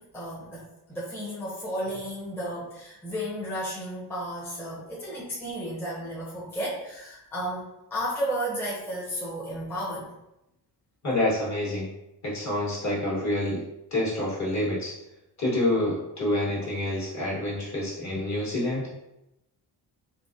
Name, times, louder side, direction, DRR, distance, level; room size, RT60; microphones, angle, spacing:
voice 1, 0.0-7.6 7.9-10.1, equal, 5° left, -7 dB, 0.7 m, -33 dB
voice 2, 11.0-11.9 12.2-13.6 13.9-14.9 15.4-18.9, left 1 dB, 40° left, -5 dB, 1.3 m, -27 dB
3.9 x 2.1 x 2.5 m, 0.89 s
cardioid pair, 100°, 42 cm